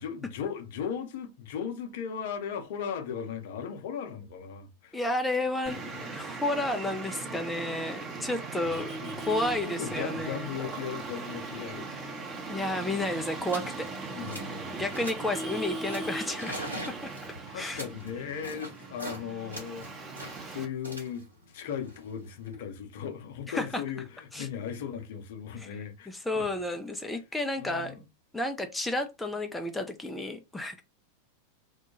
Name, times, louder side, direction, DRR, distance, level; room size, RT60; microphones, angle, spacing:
voice 1, 0.0-5.0 5.9-6.0 6.3-6.4 8.8-9.3 9.6-12.3 14.1-14.8 17.5-20.1 20.4-21.2 21.5-26.1 26.3-26.4 27.6-28.0, left 7 dB, 55° left, 0.6 m, -37 dB
voice 2, 4.9-5.8 6.1-8.9 9.2-10.5 12.5-13.9 14.7-17.1 17.5-17.8 23.5-23.8 24.3-24.5 25.6-25.7 26.1-27.9 28.3-30.8, left 1 dB, 5° left, 0.3 m, -31 dB
Traffic noise roadway noise, 5.7-20.7, right 3 dB, 25° right, 0.8 m, -39 dB
sound 1, 12.7-12.9 13.4-13.7 14.1-14.6 14.9-15.4 15.9-19.2 19.5-22.5, equal, 80° right, 0.9 m, -43 dB
2.2 x 2.1 x 2.8 m
figure-of-eight pair, 90°, 0 cm